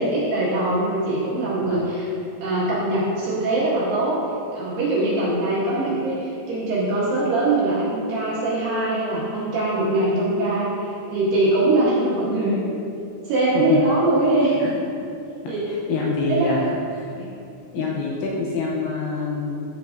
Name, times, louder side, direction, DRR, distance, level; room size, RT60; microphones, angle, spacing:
voice 1, 0.0-2.1 2.4-4.2 4.5-12.7 13.3-14.8 15.5-15.7 16.3-16.5 17.1-17.3 17.8-17.9, right 2 dB, 70° right, -7 dB, 2.6 m, -22 dB
voice 2, 15.7-16.6 16.9-17.0 17.7-19.6, left 4 dB, 85° left, -3 dB, 2.7 m, -26 dB
14.0 x 5.9 x 2.5 m, 2.6 s
omnidirectional pair, 5.9 m